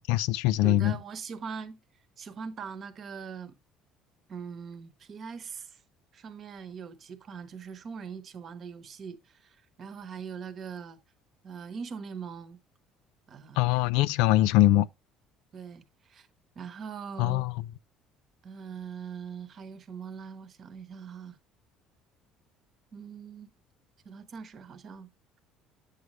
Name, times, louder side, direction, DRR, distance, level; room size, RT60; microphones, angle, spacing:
voice 1, 0.0-1.0 13.6-14.9 17.2-17.6, left 15 dB, 90° left, 0.3 m, -23 dB
voice 2, 0.6-1.8 2.2-3.5 4.3-5.8 6.1-11.0 11.4-12.6 13.3-13.9 14.2-14.3 15.5-16.3 16.5-17.5 18.4-21.4 22.9-23.5 24.0-25.1, right 6 dB, 40° right, 1.0 m, -41 dB
8.2 x 6.3 x 3.1 m
cardioid pair, 125°, 0 cm